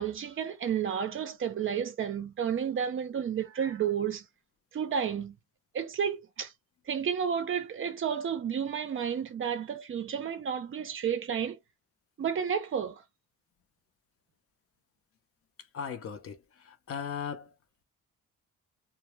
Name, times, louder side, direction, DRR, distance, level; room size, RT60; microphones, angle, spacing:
voice 1, 0.0-4.2 4.7-5.3 5.7-6.5 6.9-11.6 12.2-13.0, right 8 dB, 40° right, 0.5 m, -31 dB
voice 2, 15.7-17.5, left 7 dB, 45° left, 0.6 m, -38 dB
2.1 x 2.0 x 3.0 m
cardioid pair, 120°, 31 cm